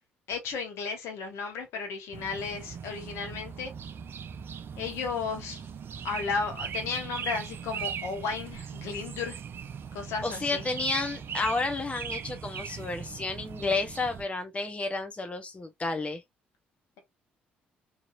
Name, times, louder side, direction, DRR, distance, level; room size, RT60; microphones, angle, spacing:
voice 1, 0.3-3.7 4.8-5.7 6.0-9.4 9.9-10.7, left 5 dB, 65° left, 1.1 m, -34 dB
sound 1, 2.1-14.2, right 7 dB, 50° right, 0.4 m, -39 dB
voice 2, 10.2-16.2, left 3 dB, 25° left, 0.7 m, -31 dB
3.0 x 2.7 x 2.4 m
hypercardioid pair, 45°, 5 cm